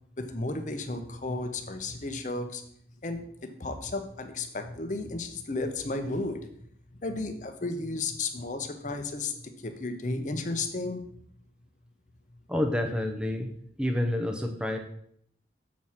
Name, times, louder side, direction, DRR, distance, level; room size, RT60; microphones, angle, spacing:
voice 1, 0.2-2.6 3.0-6.5 7.0-11.0, left 2 dB, 40° left, 7 dB, 0.9 m, -33 dB
voice 2, 12.5-13.5 13.8-14.8, left 1 dB, 5° right, 4 dB, 0.7 m, -28 dB
7.2 x 4.7 x 5.7 m, 0.67 s
head